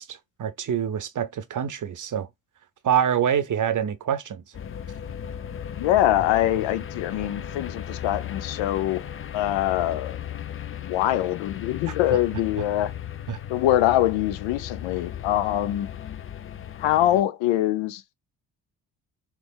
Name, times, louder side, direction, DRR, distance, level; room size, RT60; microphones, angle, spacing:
voice 1, 0.0-2.3 2.8-4.4 13.3-13.4, right 9 dB, 40° right, 0.7 m, -26 dB
sound 1, 4.5-17.2, left 9 dB, 30° left, 0.5 m, -36 dB
voice 2, 5.8-9.0 9.3-10.2 10.8-12.9 13.5-15.9 16.8-18.1, left 13 dB, 75° left, 0.6 m, -24 dB
3.4 x 3.2 x 2.3 m
hypercardioid pair, 45°, 46 cm